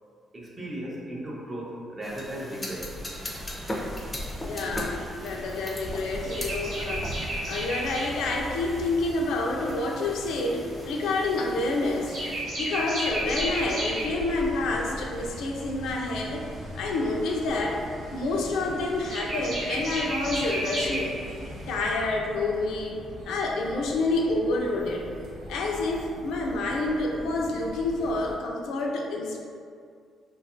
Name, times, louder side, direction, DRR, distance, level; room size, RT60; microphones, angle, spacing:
voice 1, 0.3-3.0, right 1 dB, 30° right, -4 dB, 0.6 m, -36 dB
sound 1, 2.0-12.4, equal, 15° left, 0.4 m, -38 dB
sound 2, 3.1-21.9, right 1 dB, 65° right, 1.0 m, -36 dB
voice 2, 4.4-12.1 12.6-17.9 18.1-21.2 21.7-23.0 23.3-25.1 25.5-29.4, left 2 dB, 80° left, 0 dB, 0.3 m, -28 dB
sound 3, 13.1-28.3, equal, 80° right, 0.5 m, -43 dB
2.7 x 2.3 x 2.4 m, 2.2 s
cardioid pair, 90°, 0 cm